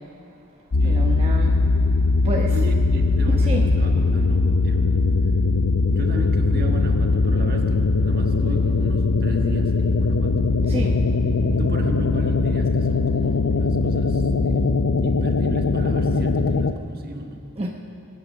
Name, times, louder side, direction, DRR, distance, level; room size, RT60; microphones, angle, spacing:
sound 1, 0.7-16.7, left 3 dB, 90° left, 0.6 m, -20 dB
voice 1, 0.8-1.6 2.2-2.5 3.5-3.6 10.7-11.0 17.6-17.7, right 1 dB, 30° right, -2 dB, 1.0 m, -28 dB
voice 2, 2.5-5.0 5.9-10.4 11.6-17.4, right 1 dB, 45° right, 3 dB, 1.5 m, -35 dB
23.5 x 9.4 x 6.3 m, 2.6 s
head